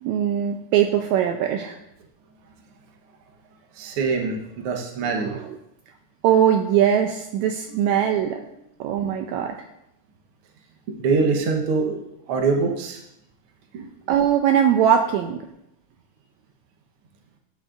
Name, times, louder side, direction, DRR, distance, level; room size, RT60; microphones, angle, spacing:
voice 1, 0.0-1.8 5.0-5.6 6.2-8.4 8.8-9.5 14.1-15.4, right 9 dB, 80° right, 4 dB, 1.8 m, -21 dB
voice 2, 3.8-5.3 7.7-8.4 9.0-9.1 10.9-12.0 12.3-13.0 13.7-13.9, right 4 dB, 60° right, 1 dB, 1.7 m, -24 dB
13.0 x 6.3 x 2.5 m, 0.82 s
omnidirectional pair, 3.4 m